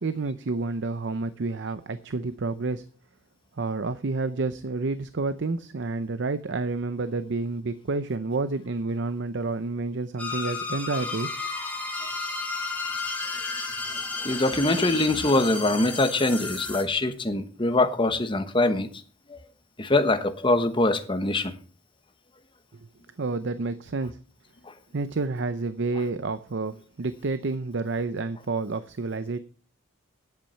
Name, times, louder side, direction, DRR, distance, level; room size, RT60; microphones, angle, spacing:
voice 1, 0.0-2.8 3.6-11.3 23.2-24.2 24.9-29.4, right 3 dB, 60° right, 0.6 m, -29 dB
sound 1, 10.2-16.8, left 4 dB, 5° left, 1.8 m, -33 dB
voice 2, 14.2-18.9 19.3-19.4 19.8-21.5, left 2 dB, 25° left, 1.2 m, -23 dB
10.5 x 8.4 x 5.6 m
head